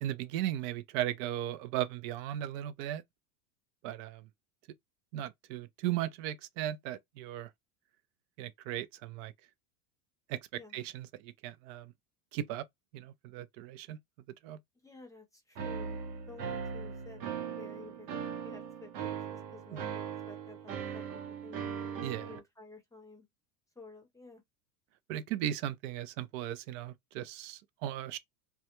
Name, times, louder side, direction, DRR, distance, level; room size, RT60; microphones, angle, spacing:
voice 1, 0.0-3.0 3.8-4.3 5.1-7.5 8.4-9.3 10.3-10.4 10.7-11.9 12.3-12.6 12.9-14.0 14.4-14.6 19.7-19.8 22.0-22.3 25.1-28.2, right 12 dB, 55° right, 0.5 m, -37 dB
voice 2, 14.7-16.0 16.3-21.6 22.2-23.3 23.8-24.4, left 3 dB, 5° left, 0.7 m, -52 dB
sound 1, 15.6-22.4, right 7 dB, 80° right, 0.9 m, -39 dB
2.3 x 2.1 x 2.9 m
hypercardioid pair, 110°, 47 cm